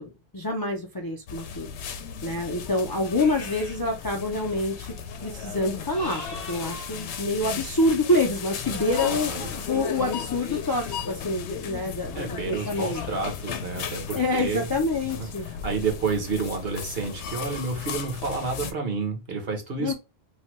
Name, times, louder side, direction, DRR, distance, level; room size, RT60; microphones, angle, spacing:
voice 1, 0.0-1.7 2.2-4.9 5.2-6.2 6.5-13.0 14.1-15.5 19.8-19.9, left 2 dB, 30° left, 0.4 m, -27 dB
sound 1, 1.3-18.7, left 7 dB, 85° left, 0.9 m, -35 dB
sound 2, 2.8-4.0 4.2-8.2 9.2-12.0 12.4-13.1 13.5-13.6 14.0-14.4, left 2 dB, 60° left, 1.0 m, -46 dB
voice 2, 9.0-9.5 12.1-14.7 15.1-15.3 15.6-19.9, right 4 dB, 65° right, 1.2 m, -30 dB
3.2 x 2.2 x 2.8 m
omnidirectional pair, 1.1 m